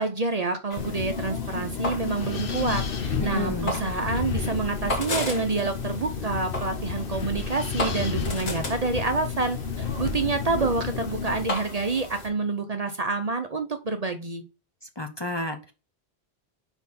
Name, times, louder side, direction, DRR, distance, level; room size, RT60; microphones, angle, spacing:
voice 1, 0.0-14.4, right 3 dB, 40° right, 7 dB, 0.7 m, -28 dB
sound 1, 0.7-12.3, equal, 85° left, 2.5 m, -35 dB
Wind, 0.8-11.5, left 6 dB, 60° left, 1.1 m, -31 dB
voice 2, 3.2-3.8 15.0-15.7, left 1 dB, 25° left, 6 dB, 0.7 m, -31 dB
5.7 x 4.5 x 4.1 m, 0.30 s
omnidirectional pair, 1.1 m